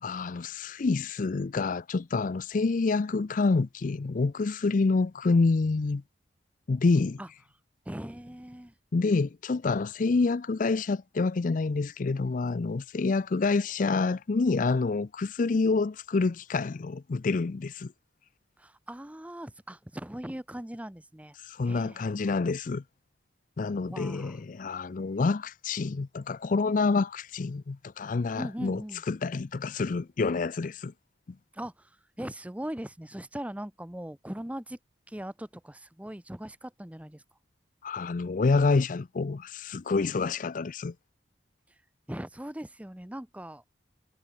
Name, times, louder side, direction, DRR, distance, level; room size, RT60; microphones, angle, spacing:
voice 1, 0.0-6.0 6.7-7.2 8.9-17.9 21.4-22.8 23.6-28.8 29.1-30.9 37.8-40.9, left 3 dB, 45° left, 0.4 m, -27 dB
voice 2, 7.8-8.7 18.6-21.4 21.6-22.1 23.9-24.4 28.3-29.0 31.5-34.8 35.1-37.2 41.7-41.8 42.1-43.6, right 1 dB, 5° right, 0.9 m, -40 dB
head